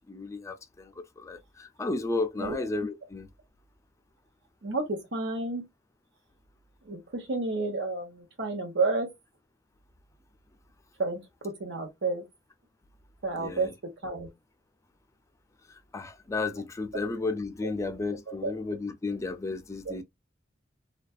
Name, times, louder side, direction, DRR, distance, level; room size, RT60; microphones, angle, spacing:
voice 1, 0.1-3.3 13.4-13.7 15.9-20.0, left 3 dB, 15° left, 0.4 m, -33 dB
voice 2, 4.6-5.6 6.9-9.1 11.0-11.2 11.6-12.2 13.2-13.7 14.0-14.3 18.3-18.5 19.8-20.0, right 3 dB, 70° right, 1.1 m, -30 dB
2.4 x 2.3 x 2.3 m
head